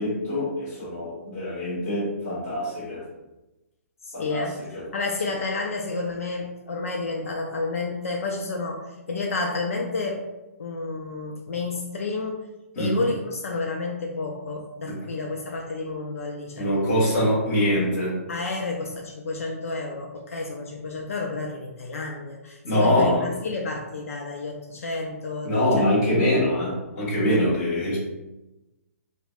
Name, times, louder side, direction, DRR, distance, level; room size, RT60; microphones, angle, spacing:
voice 1, 0.0-3.0 4.1-4.4 4.7-4.8 12.7-13.0 14.9-15.0 16.6-18.1 22.6-23.3 25.4-28.0, left 1 dB, 20° left, -8 dB, 1.1 m, -23 dB
voice 2, 4.0-10.3 10.6-12.5 12.8-16.9 18.3-25.9 26.6-26.8, left 3 dB, 65° left, 0 dB, 0.4 m, -30 dB
5.1 x 2.1 x 2.3 m, 1.0 s
hypercardioid pair, 180°, 8 cm